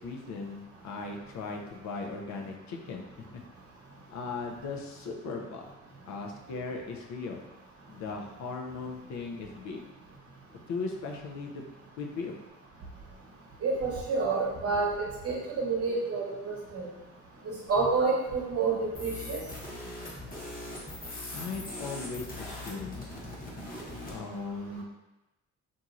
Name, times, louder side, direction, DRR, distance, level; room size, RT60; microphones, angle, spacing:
voice 1, 0.0-3.0 3.3-3.4 4.1-5.7 6.1-7.4 7.9-9.9 10.7-11.6 12.0-12.3 21.3-23.1 24.1-24.8, left 4 dB, 65° left, 2 dB, 0.5 m, -38 dB
voice 2, 13.6-16.9 17.7-19.4, right 4 dB, 50° right, -3 dB, 0.9 m, -29 dB
sound 1, 18.9-24.2, left 1 dB, 30° left, 0.9 m, -41 dB
2.9 x 2.6 x 2.4 m, 1.0 s
cardioid pair, 90°, 30 cm